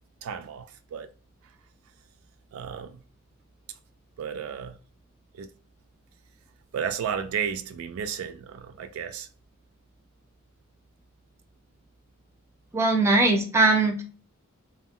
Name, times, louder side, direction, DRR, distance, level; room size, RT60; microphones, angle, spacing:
voice 1, 0.2-1.1 2.5-3.0 4.2-4.8 5.4-5.5 6.7-9.3, right 7 dB, 80° right, 0.3 m, -33 dB
voice 2, 12.7-14.0, right 2 dB, 15° right, 0.4 m, -20 dB
2.2 x 2.1 x 3.6 m
head